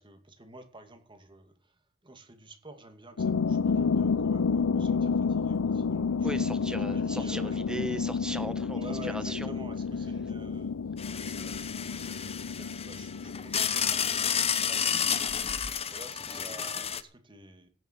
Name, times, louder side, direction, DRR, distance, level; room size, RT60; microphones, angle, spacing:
voice 1, 0.0-6.5 6.9-7.7 8.4-8.5 8.7-10.7 11.2-15.5 15.9-17.7, right 1 dB, 25° right, 2.3 m, -50 dB
sound 1, 3.2-15.6, left 5 dB, 75° left, 0.6 m, -30 dB
voice 2, 6.2-9.6, right 1 dB, 5° right, 1.1 m, -37 dB
sound 2, 11.0-17.0, left 8 dB, 30° left, 0.9 m, -31 dB
16.5 x 7.3 x 7.5 m
head